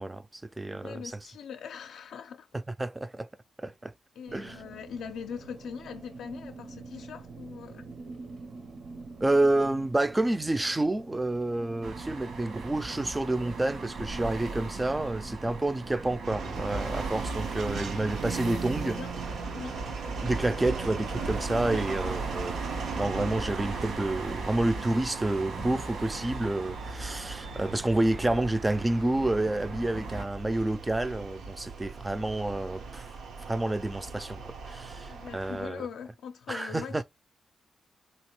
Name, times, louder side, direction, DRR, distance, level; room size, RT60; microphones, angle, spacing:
voice 1, 0.0-1.0 2.8-3.3 3.6-3.9 4.3-4.6 9.2-19.0 20.2-22.6 22.9-33.1 33.5-34.4 34.7-35.8 36.5-37.0, right 2 dB, 15° right, 0.3 m, -29 dB
voice 2, 0.7-2.5 4.2-8.0 18.3-19.1 19.5-19.8 35.1-37.0, left 7 dB, 90° left, 0.4 m, -42 dB
sound 1, 4.3-16.2, right 3 dB, 50° right, 0.6 m, -45 dB
sound 2, 11.8-30.2, right 4 dB, 65° right, 1.2 m, -39 dB
sound 3, 16.2-35.7, right 4 dB, 85° right, 0.8 m, -38 dB
3.6 x 2.8 x 3.0 m
wide cardioid pair, 135°, 0 cm